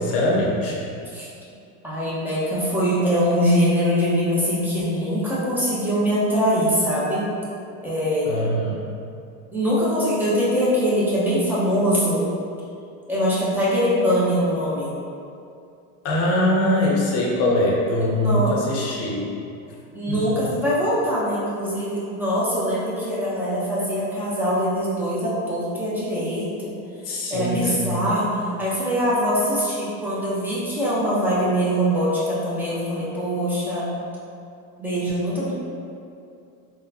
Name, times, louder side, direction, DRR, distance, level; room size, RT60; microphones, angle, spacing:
voice 1, 0.0-0.9 8.3-8.8 16.0-19.2 20.1-20.4 27.0-28.0, left 1 dB, 35° left, -3 dB, 0.7 m, -22 dB
voice 2, 1.8-7.2 7.8-8.4 9.5-12.2 13.1-14.9 18.0-18.5 19.9-26.7 27.1-33.9 34.8-35.5, equal, 5° right, -9 dB, 0.5 m, -23 dB
3.7 x 2.2 x 2.7 m, 2.5 s
supercardioid pair, 125°, 44 cm